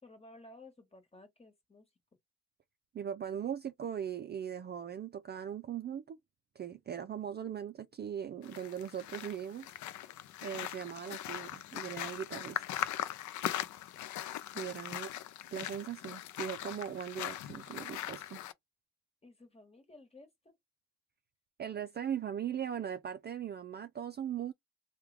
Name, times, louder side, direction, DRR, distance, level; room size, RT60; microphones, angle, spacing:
voice 1, 0.0-1.9 19.2-20.5, left 2 dB, 20° left, 1.4 m, -56 dB
voice 2, 2.9-6.2 6.6-9.7 10.4-12.6 14.5-15.1 15.5-18.4 21.6-24.5, right 9 dB, 35° right, 0.4 m, -39 dB
sound 1, 8.4-18.5, left 13 dB, 75° left, 0.5 m, -40 dB
3.3 x 2.3 x 3.3 m
cardioid pair, 90°, 30 cm